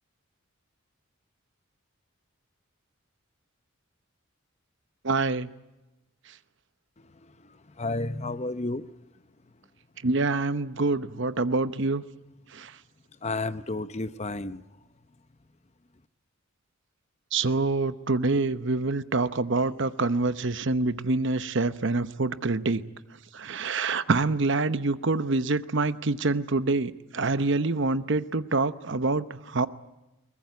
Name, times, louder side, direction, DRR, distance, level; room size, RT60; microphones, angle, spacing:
voice 1, 5.0-5.5 10.0-12.0 12.5-12.7 17.3-22.8 23.3-29.7, right 3 dB, 55° right, 0.9 m, -26 dB
voice 2, 7.8-8.9 13.2-14.6, left 2 dB, 30° left, 0.8 m, -31 dB
22.5 x 19.5 x 9.5 m
head